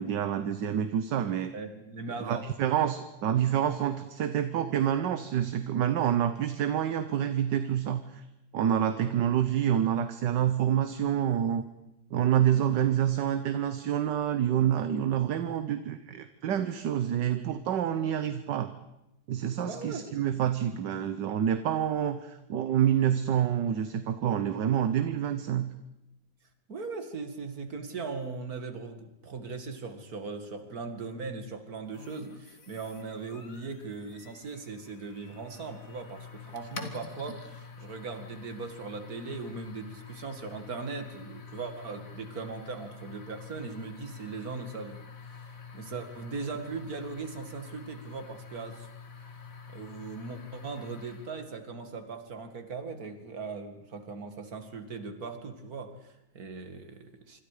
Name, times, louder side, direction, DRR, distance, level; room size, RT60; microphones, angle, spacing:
voice 1, 0.0-1.5 2.2-8.2 8.5-11.6 12.1-18.7 19.3-25.7, right 10 dB, 70° right, 10 dB, 1.6 m, -27 dB
voice 2, 1.5-2.4 19.6-20.1 26.7-48.9 49.7-57.4, right 4 dB, 50° right, 7 dB, 2.5 m, -39 dB
sound 1, 31.9-51.5, left 5 dB, 45° left, 2.3 m, -47 dB
26.5 x 25.0 x 5.0 m, 0.89 s
omnidirectional pair, 2.0 m